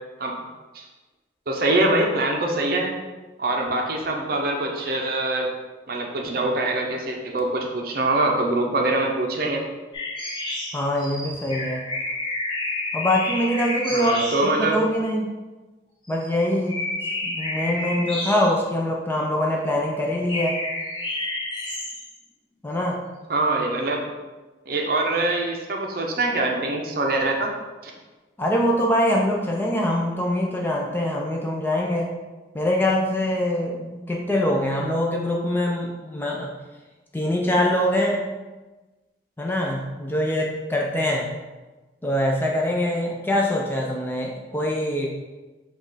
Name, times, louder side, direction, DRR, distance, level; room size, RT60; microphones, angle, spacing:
voice 1, 1.5-2.9 3.4-5.5 5.9-9.6 13.9-14.8 23.3-24.0 24.7-27.5 27.8-27.9, right 2 dB, 50° right, 1 dB, 0.6 m, -24 dB
sound 1, 9.9-14.6 16.1-16.3 16.7-18.8 20.3-22.2, left 2 dB, 25° left, 1.0 m, -30 dB
voice 2, 10.7-11.8 12.9-15.3 16.1-16.8 17.2-20.6 22.6-23.0 28.4-32.1 32.5-36.5 37.1-38.3 39.4-41.3 42.0-45.1, left 1 dB, 10° left, -1 dB, 0.4 m, -24 dB
5.0 x 2.4 x 3.9 m, 1.2 s
head